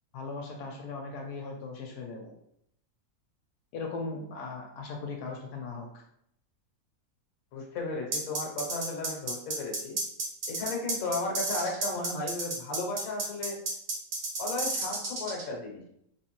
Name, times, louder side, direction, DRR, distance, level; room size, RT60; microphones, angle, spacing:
voice 1, 0.1-2.3 3.7-6.0, left 3 dB, 85° left, 0 dB, 1.1 m, -38 dB
voice 2, 7.5-10.0 10.5-13.6 14.4-15.8, left 2 dB, 65° left, 0 dB, 1.2 m, -34 dB
sound 1, 8.1-15.4, right 3 dB, 80° right, 1.4 m, -32 dB
3.2 x 3.1 x 3.0 m, 0.74 s
omnidirectional pair, 1.6 m